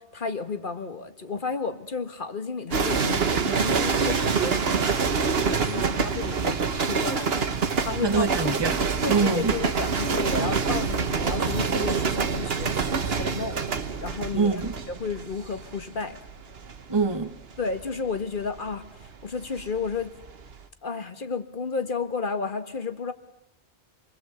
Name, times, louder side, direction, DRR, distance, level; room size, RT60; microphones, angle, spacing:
voice 1, 0.0-8.3 9.0-14.6 14.9-16.2 17.6-20.1 20.8-23.1, left 4 dB, 55° left, 9 dB, 1.7 m, -32 dB
sound 1, 2.7-19.9 20.2-20.6, right 5 dB, 75° right, 1.4 m, -26 dB
voice 2, 8.0-9.5 14.3-14.7 16.9-17.3, right 4 dB, 25° right, 9 dB, 1.2 m, -25 dB
27.5 x 21.0 x 8.1 m, 0.91 s
omnidirectional pair, 1.0 m